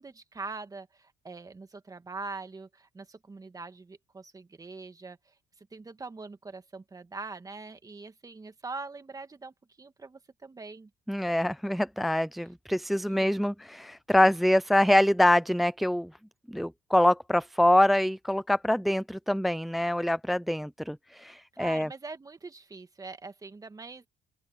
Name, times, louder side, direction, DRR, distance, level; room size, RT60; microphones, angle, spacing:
voice 1, 0.0-10.9 12.4-12.5 13.1-13.3 21.5-24.1, right 3 dB, 20° right, 2.1 m, -43 dB
voice 2, 11.1-16.1 16.5-21.9, left 1 dB, ahead, 0.3 m, -25 dB
open air
cardioid pair, 110°, 17 cm